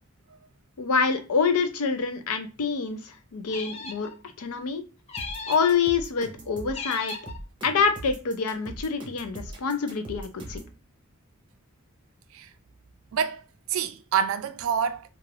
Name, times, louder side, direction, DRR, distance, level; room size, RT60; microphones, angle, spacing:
voice 1, 0.8-4.1 4.4-4.8 5.5-7.2 7.6-10.6, left 5 dB, 80° left, 0.5 m, -26 dB
sound 1, 3.5-4.1 5.1-5.8 6.7-7.4, left 4 dB, 30° left, 0.4 m, -36 dB
sound 2, 5.2-10.7, right 1 dB, 20° right, 0.7 m, -41 dB
voice 2, 13.1-13.4 13.7-15.1, right 7 dB, 65° right, 0.3 m, -27 dB
2.4 x 2.4 x 3.2 m
head